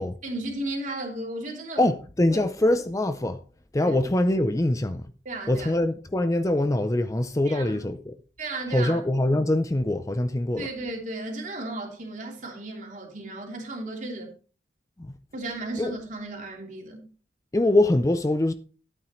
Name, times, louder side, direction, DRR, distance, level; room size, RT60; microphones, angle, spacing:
voice 1, 0.2-1.8 2.3-2.4 3.8-4.0 5.2-5.7 7.4-7.9 8.4-9.0 10.6-14.3 15.3-17.1, right 2 dB, 45° right, 3.0 m, -34 dB
voice 2, 1.8-3.4 3.7-5.0 5.5-8.1 8.7-10.7 15.0-15.1 15.8-15.9 17.5-18.5, left 1 dB, 20° left, 0.5 m, -23 dB
13.0 x 8.8 x 3.1 m
head